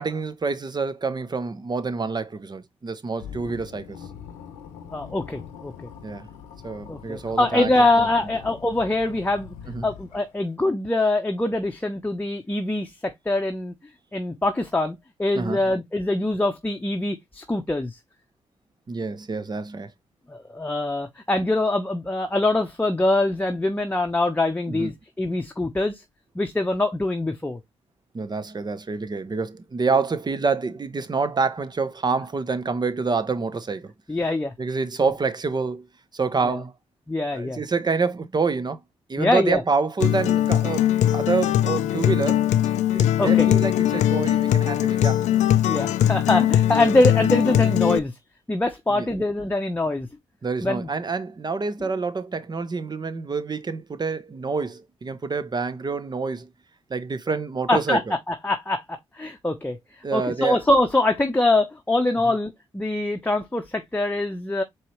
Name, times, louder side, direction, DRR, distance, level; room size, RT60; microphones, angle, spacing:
voice 1, 0.0-4.0 6.0-6.3 6.6-8.1 9.7-9.9 15.3-15.6 18.9-19.9 24.7-24.9 28.1-33.9 34.6-35.9 36.1-36.7 37.3-38.8 39.1-42.4 42.9-45.2 48.9-49.1 50.4-56.5 56.9-58.0 60.0-60.6 62.3-62.4, right 4 dB, 35° right, 0.8 m, -27 dB
sound 1, 3.2-10.4, left 8 dB, 85° left, 0.8 m, -42 dB
voice 2, 4.9-5.7 6.9-9.5 9.8-13.7 14.1-18.0 20.3-26.0 26.3-27.6 34.1-34.5 36.5-36.6 37.1-37.6 39.2-39.6 43.2-43.5 45.7-48.1 48.5-50.1 50.6-50.9 57.7-58.0 58.3-59.8 60.1-64.6, left 2 dB, 15° left, 0.8 m, -23 dB
Acoustic guitar, 40.0-48.0, left 12 dB, 70° left, 0.4 m, -20 dB
4.5 x 3.1 x 3.1 m
hypercardioid pair, 45°, 13 cm